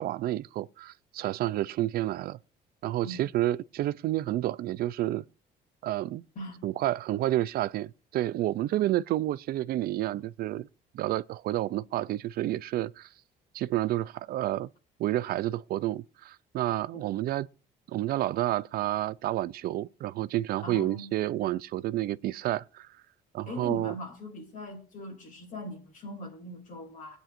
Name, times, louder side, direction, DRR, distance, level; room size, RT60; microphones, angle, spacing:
voice 1, 0.0-2.4 2.8-5.2 5.8-6.2 6.6-10.7 10.9-13.1 13.5-14.7 15.0-17.5 17.9-22.9 23.3-23.9, right 14 dB, 65° right, 0.4 m, -30 dB
voice 2, 20.6-21.1 23.5-27.2, left 1 dB, 50° left, 2.8 m, -40 dB
21.5 x 8.9 x 2.5 m
cardioid pair, 110°, 17 cm